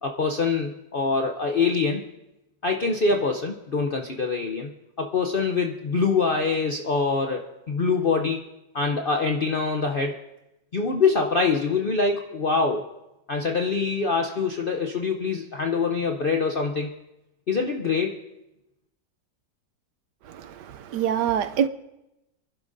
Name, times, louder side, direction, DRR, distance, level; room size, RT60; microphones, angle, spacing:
voice 1, 0.0-2.1 2.6-4.7 5.0-8.4 8.7-10.2 10.7-12.9 13.3-16.9 17.5-18.2, left 4 dB, 75° left, 0.5 m, -24 dB
voice 2, 20.3-21.7, right 9 dB, 70° right, 1.2 m, -25 dB
29.0 x 11.5 x 2.6 m
omnidirectional pair, 2.0 m